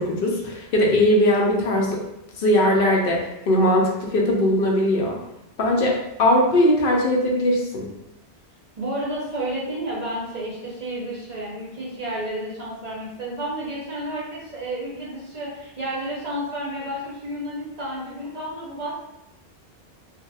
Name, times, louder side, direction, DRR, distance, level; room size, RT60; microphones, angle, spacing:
voice 1, 0.0-2.0 2.4-3.2 3.5-5.2 5.6-7.9, left 1 dB, 65° left, -1 dB, 0.8 m, -20 dB
voice 2, 8.8-19.0, right 1 dB, 45° right, -7 dB, 0.8 m, -31 dB
2.8 x 2.8 x 2.3 m, 0.87 s
omnidirectional pair, 1.1 m